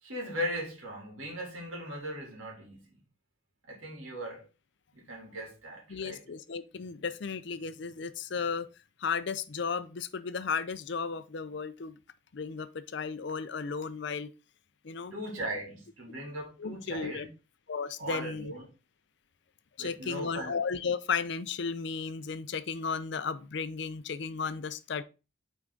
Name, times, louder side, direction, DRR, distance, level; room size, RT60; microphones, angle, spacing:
voice 1, 0.0-2.8 3.7-4.4 4.9-6.2 15.1-17.3 18.0-18.6 19.8-20.6, equal, 75° right, 2.9 m, -38 dB
voice 2, 5.9-8.7 9.0-12.0 12.3-14.3 14.8-15.1 16.6-17.3 17.7-18.5 19.8-25.0, left 5 dB, 55° left, 0.5 m, -34 dB
6.1 x 4.6 x 3.8 m
head